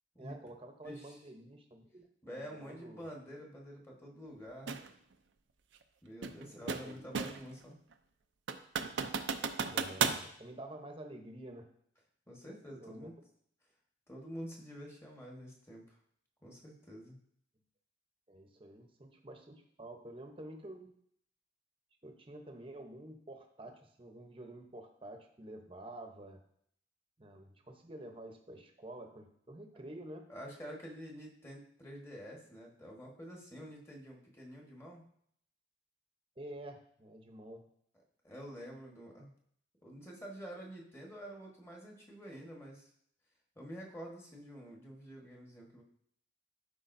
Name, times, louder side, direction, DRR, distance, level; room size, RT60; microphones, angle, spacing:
voice 1, 0.2-3.1 6.4-7.1 9.6-11.7 12.8-13.1 18.3-20.9 22.0-26.4 27.2-30.3 36.4-37.7, right 1 dB, 30° right, 4 dB, 0.9 m, -49 dB
voice 2, 0.8-1.2 2.2-4.8 6.0-7.8 12.3-13.1 14.1-16.0 16.4-17.2 30.3-35.1 38.2-39.3 39.8-42.9 43.5-45.8, equal, 15° left, -2 dB, 1.4 m, -48 dB
sound 1, 4.7-4.9 6.2-7.5 7.9-8.0 8.5-10.2, right 6 dB, 75° right, 0.5 m, -34 dB
12.5 x 4.9 x 2.6 m, 0.67 s
head